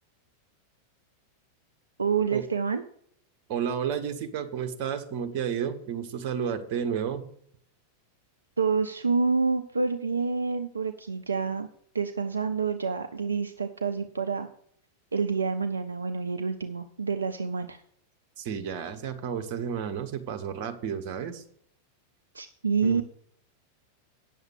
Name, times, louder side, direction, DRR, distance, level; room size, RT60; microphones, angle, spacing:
voice 1, 2.0-2.8 8.6-11.7 11.9-14.5 15.1-17.8 22.3-23.0, right 5 dB, 75° right, 8 dB, 0.5 m, -28 dB
voice 2, 3.5-7.3 18.4-21.4 22.8-23.0, right 8 dB, 45° right, 9 dB, 1.4 m, -31 dB
9.2 x 7.2 x 6.4 m, 0.66 s
figure-of-eight pair, 90°, 0 cm